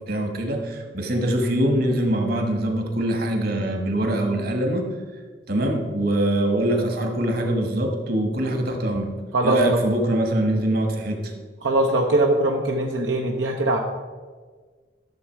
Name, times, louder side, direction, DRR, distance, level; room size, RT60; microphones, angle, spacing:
voice 1, 0.1-4.9 5.5-9.1 9.4-11.3, right 1 dB, 55° right, 3 dB, 1.6 m, -23 dB
voice 2, 11.6-13.8, right 1 dB, 80° right, 1 dB, 0.9 m, -21 dB
12.5 x 6.9 x 4.6 m, 1.5 s
head